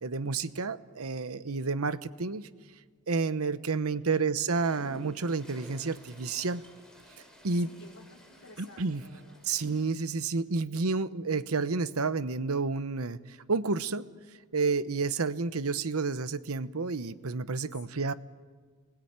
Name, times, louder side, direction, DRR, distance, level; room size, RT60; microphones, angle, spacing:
voice 1, 0.0-2.5 3.1-6.6 7.4-7.7 8.6-9.0 9.5-14.1 14.5-18.1, right 4 dB, 75° right, 13 dB, 1.0 m, -30 dB
voice 2, 3.9-4.3 7.6-9.4 17.7-18.1, left 2 dB, 70° left, -1 dB, 4.2 m, -54 dB
Toilet flush, 4.5-10.3, left 1 dB, 5° left, 5.2 m, -53 dB
27.0 x 20.0 x 8.9 m, 1.5 s
head